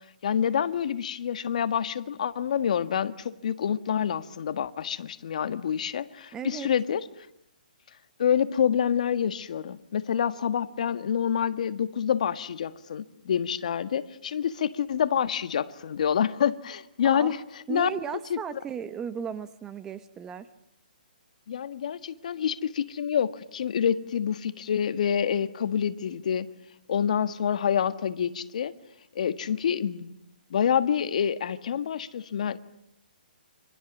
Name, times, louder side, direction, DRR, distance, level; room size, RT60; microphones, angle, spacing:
voice 1, 0.2-7.0 8.2-17.4 17.7-17.9 18.3-18.4 21.5-26.5 26.9-28.7 29.2-30.1 30.5-32.6, left 8 dB, 50° left, 13 dB, 1.7 m, -27 dB
voice 2, 6.3-6.7 17.0-17.3 17.7-20.5, right 7 dB, 10° right, 13 dB, 1.0 m, -35 dB
30.0 x 26.5 x 7.3 m, 0.81 s
hypercardioid pair, 165°, 5 cm